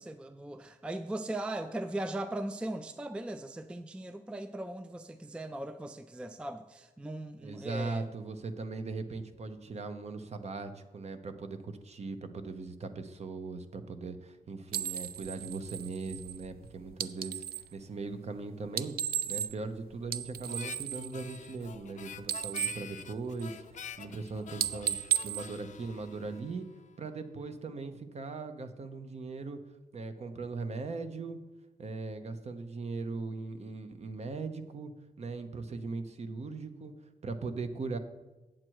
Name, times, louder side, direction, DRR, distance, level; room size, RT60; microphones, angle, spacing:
voice 1, 0.0-8.1, right 1 dB, 5° right, 10 dB, 0.3 m, -39 dB
voice 2, 7.4-18.9 19.3-26.6 27.0-29.6 29.9-31.4 31.8-34.9 35.2-36.9 37.2-38.0, right 3 dB, 45° right, 9 dB, 0.8 m, -39 dB
sound 1, 14.7-17.7 18.6-19.7 20.0-21.9 22.2-23.7 24.1-24.3 24.6-26.4, right 10 dB, 85° right, 0.4 m, -35 dB
Harmonica, 20.5-27.0, left 8 dB, 55° left, 0.4 m, -47 dB
8.8 x 7.6 x 4.7 m, 1.1 s
wide cardioid pair, 140°, 15 cm